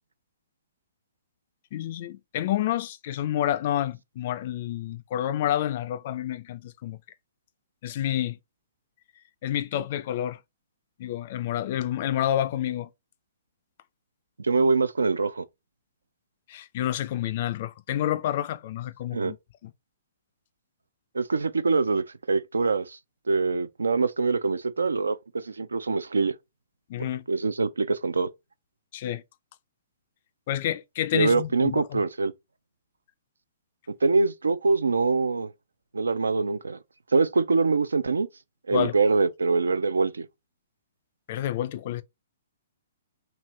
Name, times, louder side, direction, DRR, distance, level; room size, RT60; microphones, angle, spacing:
voice 1, 1.7-7.0 7.8-8.4 9.4-10.4 11.0-12.9 16.5-19.4 19.6-19.7 26.9-27.2 28.9-29.2 30.5-32.0 38.7-38.9 41.3-42.0, left 12 dB, 45° left, 0.3 m, -29 dB
voice 2, 14.4-15.4 19.1-19.3 21.1-23.0 23.3-26.3 27.0-28.3 31.1-32.3 34.0-35.5 35.9-36.8 37.1-38.3 38.7-40.3, right 4 dB, 70° right, 0.3 m, -24 dB
3.1 x 2.6 x 3.1 m
figure-of-eight pair, 120°, 0 cm